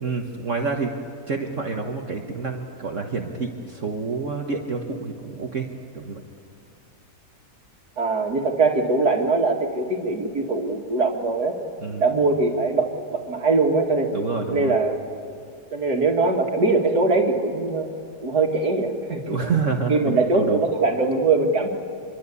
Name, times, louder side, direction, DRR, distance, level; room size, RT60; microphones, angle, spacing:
voice 1, 0.0-0.9 1.3-5.7 5.9-6.2 11.8-12.1 14.1-14.8 19.3-20.6, right 4 dB, 50° right, 2 dB, 1.7 m, -28 dB
voice 2, 8.0-11.6 12.0-14.1 14.5-15.0 15.7-17.9 18.2-19.5 19.9-21.7, right 3 dB, 70° right, 2 dB, 2.6 m, -22 dB
26.0 x 23.5 x 8.4 m, 2.4 s
omnidirectional pair, 1.8 m